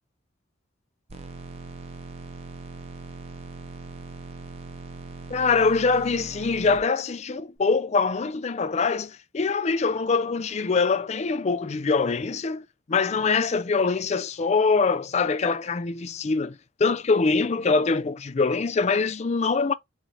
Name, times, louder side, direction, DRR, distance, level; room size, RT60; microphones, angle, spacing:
sound 1, 1.1-6.8, right 3 dB, 30° right, 0.7 m, -40 dB
voice 1, 5.3-19.7, left 4 dB, 35° left, 0.4 m, -24 dB
4.7 x 2.6 x 2.9 m
head